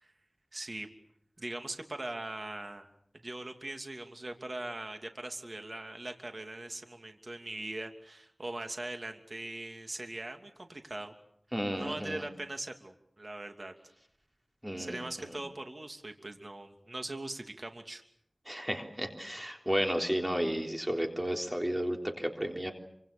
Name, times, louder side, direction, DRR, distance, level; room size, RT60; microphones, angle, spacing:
voice 1, 0.5-0.9 1.4-2.9 3.2-11.1 11.7-13.7 14.8-18.0, right 2 dB, 55° right, 5 dB, 2.9 m, -41 dB
voice 2, 11.5-12.3 14.6-15.4 18.5-22.7, equal, 20° right, 3 dB, 3.6 m, -33 dB
27.0 x 25.5 x 7.0 m, 0.72 s
wide cardioid pair, 45°, 0 cm